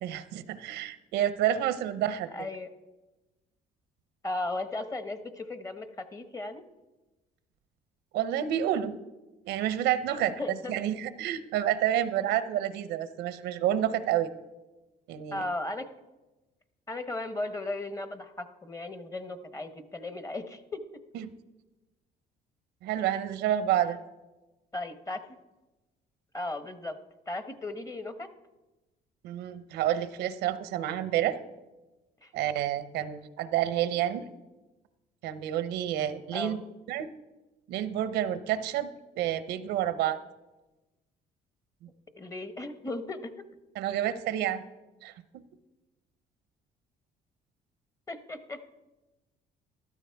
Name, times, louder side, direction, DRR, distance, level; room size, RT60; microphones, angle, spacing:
voice 1, 0.0-2.5 8.1-8.9 9.4-14.3 15.1-15.5 21.1-21.3 22.8-24.0 29.2-31.4 32.3-34.2 35.2-36.6 36.9-37.1 37.7-38.9 39.2-40.2 41.8-41.9 43.8-44.6 45.0-45.4, right 11 dB, 85° right, 13 dB, 0.8 m, -29 dB
voice 2, 2.3-2.7 4.2-5.9 6.1-6.6 10.4-10.7 15.3-15.9 16.9-20.8 24.7-25.2 26.3-26.9 27.3-28.3 32.2-32.3 33.9-34.2 36.3-36.6 42.2-43.4 48.1-48.7, left 2 dB, 20° left, 10 dB, 1.0 m, -36 dB
14.0 x 12.5 x 3.5 m, 1.1 s
cardioid pair, 110°, 17 cm